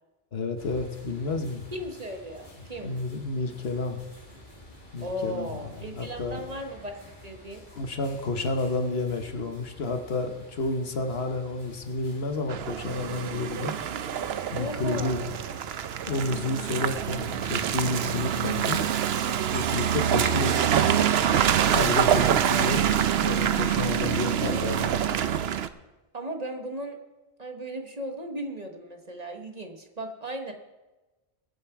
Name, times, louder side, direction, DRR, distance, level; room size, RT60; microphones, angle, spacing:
voice 1, 0.3-1.6 2.8-4.0 4.9-5.5 5.9-6.4 7.7-13.8 14.5-15.3 16.0-18.8 19.5-20.9 21.7-22.8 23.1-24.9, left 3 dB, 65° left, 6 dB, 1.4 m, -30 dB
sound 1, 0.6-18.2, left 1 dB, 45° left, 2.7 m, -50 dB
voice 2, 1.7-2.9 5.0-7.0 7.2-7.6 14.5-15.3 20.1-20.8 22.4-22.9 26.1-27.0 27.4-30.5, right 1 dB, 35° right, 4 dB, 1.3 m, -36 dB
Car passing by / Engine, 12.5-25.7, right 9 dB, 70° right, 0.9 m, -25 dB
21.0 x 7.5 x 4.7 m, 1.1 s
omnidirectional pair, 1.1 m